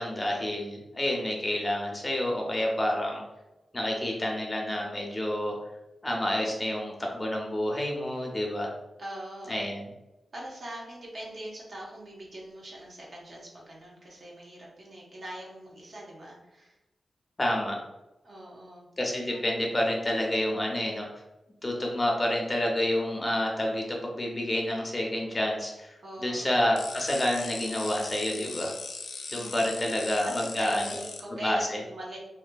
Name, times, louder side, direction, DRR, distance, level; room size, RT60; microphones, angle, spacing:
voice 1, 0.0-3.2 3.7-5.6 6.0-8.7 9.5-9.9 17.4-17.8 19.0-21.1 21.6-25.9 26.2-28.7 29.3-31.0 31.3-31.8, left 1 dB, 20° left, -1 dB, 0.5 m, -29 dB
voice 2, 9.0-9.6 10.3-16.8 18.2-18.9 26.0-26.5 29.3-32.2, right 1 dB, 60° right, -3 dB, 0.8 m, -42 dB
sound 1, 26.8-31.2, left 4 dB, 80° left, 0.3 m, -39 dB
2.5 x 2.5 x 2.2 m, 0.99 s
wide cardioid pair, 95°, 0 cm